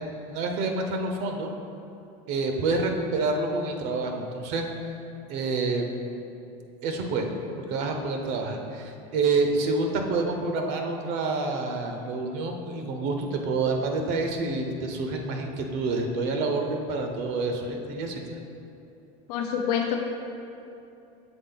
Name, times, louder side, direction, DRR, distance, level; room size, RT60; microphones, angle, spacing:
voice 1, 0.3-1.5 2.3-4.7 5.3-6.1 6.8-7.3 7.7-18.4, right 3 dB, 60° right, 3 dB, 0.7 m, -28 dB
voice 2, 19.3-20.0, left 8 dB, 85° left, 2 dB, 0.6 m, -26 dB
7.1 x 3.7 x 3.9 m, 2.8 s
supercardioid pair, 135°, 20 cm